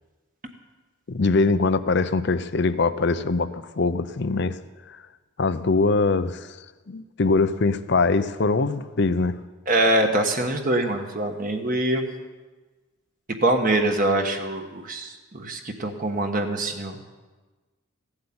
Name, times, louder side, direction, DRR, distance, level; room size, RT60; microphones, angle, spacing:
voice 1, 1.1-4.6 4.9-5.0 5.4-6.6 6.9-9.4, left 3 dB, 50° left, 13 dB, 0.6 m, -22 dB
voice 2, 9.7-12.0 13.4-16.9, right 1 dB, 40° right, 4 dB, 1.2 m, -24 dB
15.5 x 8.0 x 8.6 m, 1.3 s
head